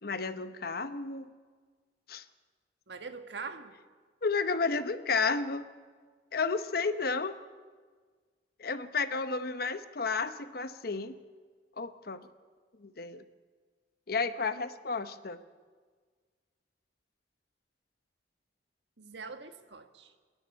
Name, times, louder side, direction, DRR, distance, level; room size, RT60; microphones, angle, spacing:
voice 1, 0.0-1.3 2.1-2.2 4.2-5.7 6.3-7.4 8.6-11.1 11.8-12.2 12.8-13.2 14.1-15.4, left 4 dB, 55° left, 11 dB, 0.9 m, -32 dB
voice 2, 2.9-3.8 19.0-20.1, right 4 dB, 80° right, 7 dB, 1.6 m, -43 dB
29.0 x 10.5 x 8.8 m, 1.5 s
head